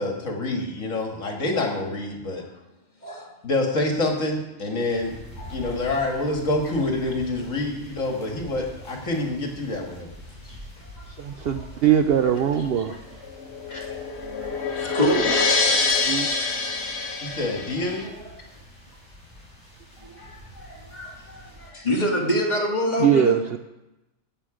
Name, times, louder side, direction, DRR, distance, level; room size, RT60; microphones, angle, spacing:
voice 1, 0.0-2.4 3.4-5.1 5.5-10.1 17.2-18.1, left 2 dB, 75° left, 1 dB, 2.2 m, -27 dB
voice 2, 3.0-3.3 5.4-5.7 10.4-10.6 11.0-11.7 12.6-13.0 13.7-15.4 15.8-16.2 17.8-18.4 20.0-23.4, equal, 30° left, -1 dB, 2.2 m, -29 dB
sound 1, 4.9-21.7, left 1 dB, 5° left, 5.3 m, -45 dB
voice 3, 11.1-12.9 15.7-15.8 16.0-16.3 23.0-23.6, right 9 dB, 60° right, 8 dB, 0.6 m, -21 dB
sound 2, 13.2-18.1, left 4 dB, 55° left, 1.5 m, -25 dB
16.0 x 7.8 x 4.9 m, 0.99 s
omnidirectional pair, 1.4 m